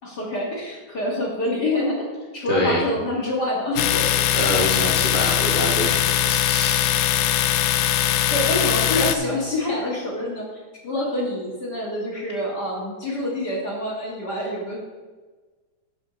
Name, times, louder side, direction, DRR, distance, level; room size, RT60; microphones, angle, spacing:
voice 1, 0.0-4.2 8.3-14.8, left 1 dB, 40° left, -3 dB, 1.8 m, -26 dB
voice 2, 2.5-2.8 4.3-6.9, equal, 55° right, -3 dB, 0.6 m, -25 dB
Domestic sounds home sounds, 3.8-9.2, left 12 dB, 85° left, 2.1 m, -21 dB
12.0 x 5.5 x 5.1 m, 1.3 s
omnidirectional pair, 3.7 m